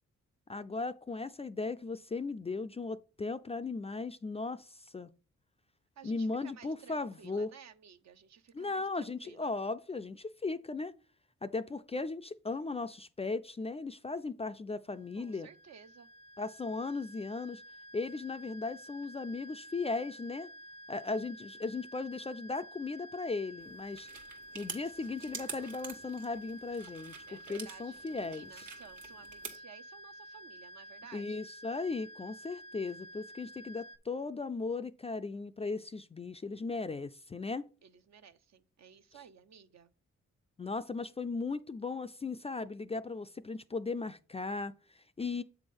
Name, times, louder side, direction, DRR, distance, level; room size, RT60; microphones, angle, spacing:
voice 1, 0.5-5.1 6.0-7.5 8.5-10.9 11.4-15.5 16.4-17.6 17.9-20.5 20.9-24.1 24.5-27.2 27.5-28.7 31.1-37.7 40.6-45.4, left 3 dB, 20° left, 0.3 m, -37 dB
voice 2, 6.0-9.5 15.2-16.1 27.3-31.4 37.8-39.9, right 7 dB, 60° right, 0.6 m, -55 dB
sound 1, 14.9-34.0, right 1 dB, 85° left, 0.7 m, -51 dB
sound 2, 23.6-29.5, right 5 dB, 75° right, 1.3 m, -48 dB
7.5 x 3.5 x 5.3 m
supercardioid pair, 50°, 31 cm